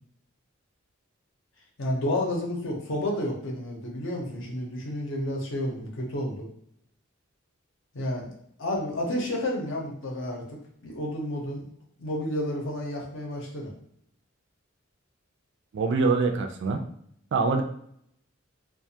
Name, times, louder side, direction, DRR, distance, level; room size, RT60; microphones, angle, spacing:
voice 1, 1.8-6.5 7.9-10.6 10.8-11.7 12.0-13.7, left 1 dB, 65° left, -1 dB, 0.7 m, -31 dB
voice 2, 15.7-16.8 17.3-17.6, right 4 dB, 60° right, 4 dB, 0.4 m, -24 dB
2.4 x 2.3 x 2.7 m, 0.68 s
head